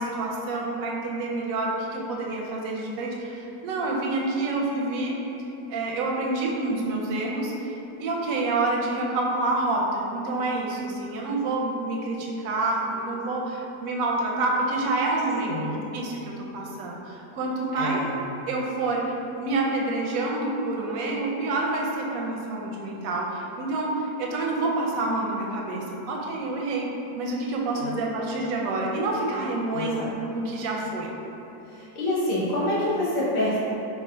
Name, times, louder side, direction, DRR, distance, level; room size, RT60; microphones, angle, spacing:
voice 1, 0.0-5.1 5.7-15.5 15.9-18.0 18.5-26.9 27.2-30.0 30.3-31.1, right 2 dB, 70° right, -1 dB, 0.8 m, -28 dB
voice 2, 17.7-18.1 27.7-28.0 29.7-30.1 31.7-33.6, left 1 dB, 50° left, -9 dB, 0.7 m, -27 dB
3.4 x 2.3 x 4.4 m, 2.9 s
omnidirectional pair, 1.8 m